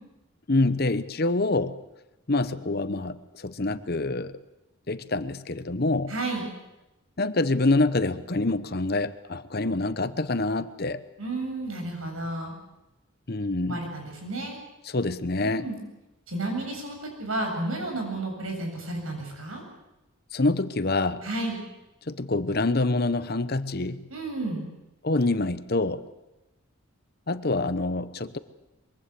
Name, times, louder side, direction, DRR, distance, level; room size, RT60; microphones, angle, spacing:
voice 1, 0.5-1.7 2.3-4.4 4.9-6.1 7.2-11.0 13.3-13.8 14.9-15.7 20.3-21.2 22.1-24.0 25.0-26.0 27.3-28.4, left 2 dB, 45° left, 13 dB, 1.0 m, -26 dB
voice 2, 6.1-6.5 11.2-12.5 13.7-14.6 15.4-15.8 16.3-19.6 21.2-21.6 24.1-24.6, right 2 dB, 80° right, 3 dB, 7.8 m, -32 dB
23.0 x 23.0 x 8.3 m, 0.96 s
head